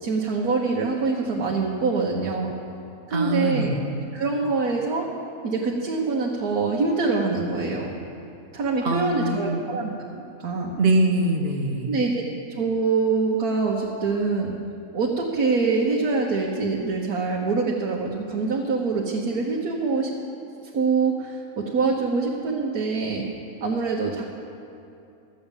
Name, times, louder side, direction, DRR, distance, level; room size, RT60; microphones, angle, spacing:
voice 1, 0.0-2.5 3.1-3.7 4.1-5.1 5.4-7.9 8.5-10.7 11.9-12.2 12.6-14.5 14.9-20.1 20.7-23.2 23.6-24.2, right 4 dB, 85° right, -3 dB, 1.6 m, -24 dB
voice 2, 3.1-3.8 8.8-9.8 10.8-12.0, right 2 dB, 45° right, 3 dB, 1.2 m, -23 dB
13.5 x 7.9 x 7.2 m, 2.7 s
omnidirectional pair, 1.6 m